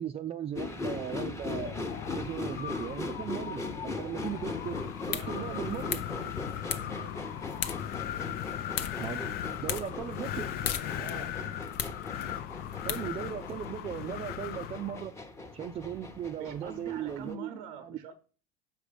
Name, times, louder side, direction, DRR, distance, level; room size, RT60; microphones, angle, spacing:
voice 1, 0.0-1.8 2.2-4.8 5.1-6.0 9.0-9.2 9.6-10.5 12.8-15.1 15.5-17.5 17.8-18.0, right 9 dB, 30° right, 0.4 m, -37 dB
sound 1, 0.6-17.3, left 2 dB, 15° left, 0.9 m, -40 dB
Wind, 1.4-15.1, left 11 dB, 50° left, 0.6 m, -38 dB
sound 2, 4.8-13.6, left 9 dB, 85° left, 0.8 m, -40 dB
voice 2, 5.1-7.3 11.0-11.4 16.3-18.1, right 6 dB, 90° right, 0.8 m, -46 dB
6.2 x 5.0 x 5.1 m
supercardioid pair, 110°, 20 cm